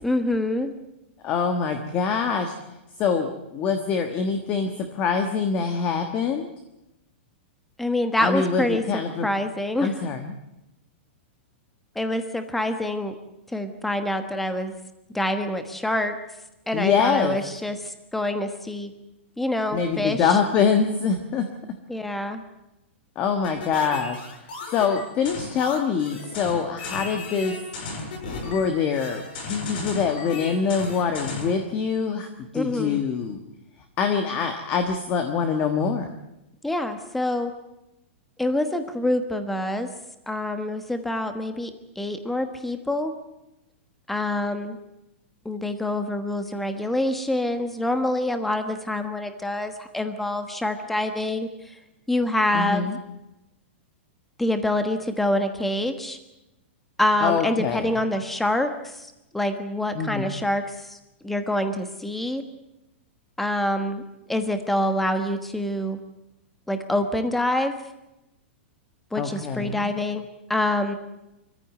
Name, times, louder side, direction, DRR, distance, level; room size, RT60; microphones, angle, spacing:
voice 1, 0.0-0.7 7.8-9.9 11.9-13.1 13.5-14.7 15.1-16.1 16.7-18.9 19.4-20.3 21.9-22.4 32.5-33.0 36.6-37.5 38.4-39.9 40.3-41.7 42.0-43.1 44.1-44.8 45.4-51.5 52.1-52.9 54.4-56.2 57.0-59.1 59.3-61.0 61.2-62.4 63.4-64.0 64.3-66.0 66.7-67.7 69.1-70.2 70.5-70.9, left 1 dB, 5° left, 8 dB, 1.3 m, -26 dB
voice 2, 1.2-2.5 3.0-6.5 8.2-9.3 9.8-10.4 16.7-17.4 19.7-21.4 23.1-24.2 24.7-27.5 28.4-32.3 32.5-33.4 34.0-36.1 52.5-53.0 57.2-57.9 59.9-60.3 69.1-69.9, left 6 dB, 20° left, 6 dB, 1.4 m, -24 dB
sound 1, 23.4-31.6, left 3 dB, 50° left, 7.5 m, -35 dB
24.5 x 15.0 x 9.2 m, 0.92 s
supercardioid pair, 175°, 7 cm